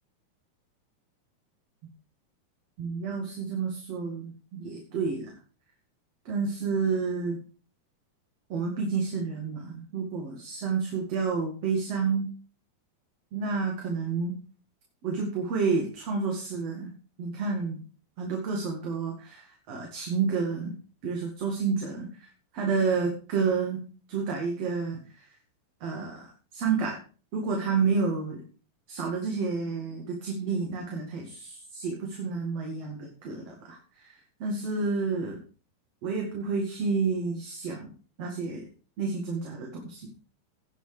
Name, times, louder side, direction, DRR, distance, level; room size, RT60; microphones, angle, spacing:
voice 1, 2.8-5.3 6.3-7.4 8.5-12.3 13.3-14.4 15.0-16.9 17.2-17.8 18.2-20.7 21.0-22.3 22.5-23.8 24.1-25.3 25.8-27.0 27.3-28.4 28.9-35.4 36.0-37.9 38.2-38.6 39.0-40.1, right 5 dB, 55° right, 0 dB, 3.1 m, -30 dB
18.0 x 6.2 x 5.0 m, 0.38 s
omnidirectional pair, 3.6 m